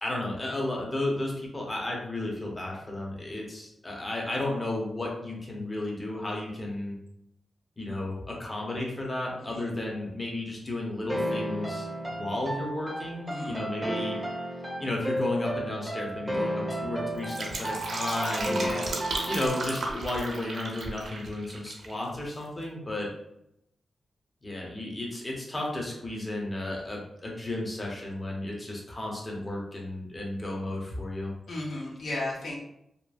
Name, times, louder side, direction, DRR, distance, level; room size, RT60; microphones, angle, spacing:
voice 1, 0.0-6.9 7.8-14.2 14.8-18.7 19.3-23.1 24.4-31.3, left 1 dB, 25° left, -2 dB, 0.7 m, -33 dB
sound 1, 11.1-20.0, equal, 10° right, 0.5 m, -33 dB
voice 2, 13.3-13.6 18.5-19.0 31.5-32.6, left 1 dB, 75° left, -3 dB, 0.7 m, -35 dB
Fill (with liquid), 17.1-21.9 22.2-22.3, right 2 dB, 75° right, 0.5 m, -34 dB
2.9 x 2.3 x 2.4 m, 0.78 s
cardioid pair, 80°, 0 cm